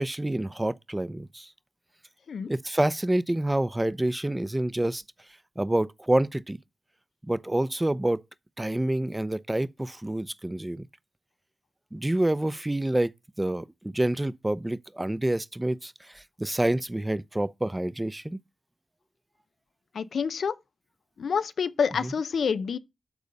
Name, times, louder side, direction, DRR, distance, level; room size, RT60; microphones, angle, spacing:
voice 1, 0.0-1.5 2.5-5.0 5.6-6.6 7.2-8.2 8.6-10.9 11.9-13.1 13.4-18.4, right 1 dB, 20° right, 0.6 m, -27 dB
voice 2, 19.9-20.6 21.2-22.8, left 6 dB, 90° left, 0.6 m, -27 dB
12.0 x 4.0 x 5.3 m
cardioid pair, 60°, 0 cm